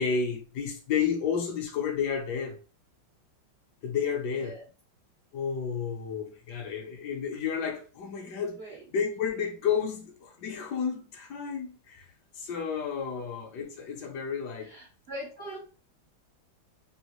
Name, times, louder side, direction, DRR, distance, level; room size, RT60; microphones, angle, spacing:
voice 1, 0.0-2.6 3.8-4.6 5.3-14.7, left 6 dB, 70° left, 1.0 m, -31 dB
voice 2, 8.2-8.8 13.2-13.3 14.6-15.6, equal, 80° right, 0.5 m, -42 dB
3.5 x 2.3 x 2.9 m
omnidirectional pair, 2.3 m